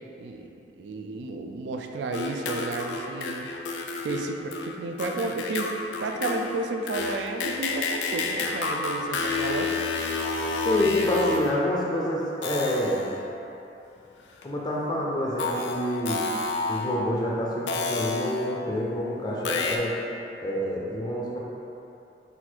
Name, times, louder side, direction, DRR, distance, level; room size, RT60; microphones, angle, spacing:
voice 1, 0.8-3.5 4.0-9.9, right 3 dB, 80° right, 4 dB, 0.3 m, -32 dB
sound 1, 2.1-11.7 12.4-13.3 14.4-14.5 15.4-17.1 17.7-18.7 19.4-19.8, left 4 dB, 85° left, 0.4 m, -30 dB
voice 2, 10.6-13.1 14.4-16.2 16.7-19.9 20.4-21.4, equal, 25° left, -4 dB, 0.4 m, -27 dB
4.1 x 2.4 x 4.3 m, 2.9 s
head